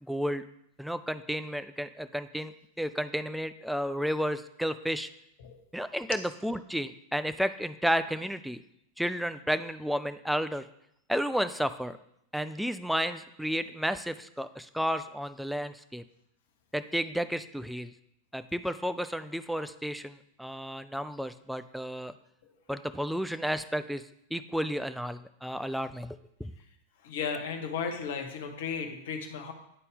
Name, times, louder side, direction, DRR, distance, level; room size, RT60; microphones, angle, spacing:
voice 1, 0.0-0.4 0.8-2.5 2.8-5.1 5.7-8.6 9.0-10.7 11.1-12.0 12.3-16.0 16.7-17.9 18.3-22.1 22.7-24.0 24.3-26.5, equal, ahead, 11 dB, 0.3 m, -32 dB
voice 2, 27.0-29.5, left 6 dB, 55° left, 5 dB, 0.9 m, -35 dB
9.8 x 4.1 x 3.6 m, 0.77 s
figure-of-eight pair, 90°, 0 cm